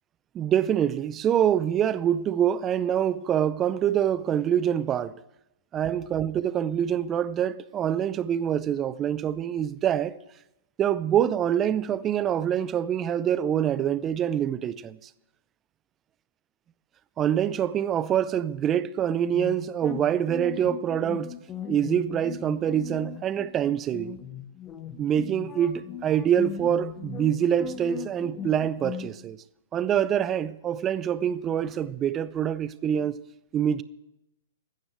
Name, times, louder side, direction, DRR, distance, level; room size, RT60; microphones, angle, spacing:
voice 1, 0.3-5.1 5.7-10.2 10.8-15.1 17.2-21.3 21.7-24.2 25.0-29.4 29.7-33.2 33.5-33.8, right 9 dB, 25° right, 0.5 m, -25 dB
sound 1, 19.3-29.1, left 9 dB, 25° left, 1.1 m, -38 dB
15.5 x 6.3 x 8.1 m
hypercardioid pair, 130°, 0 cm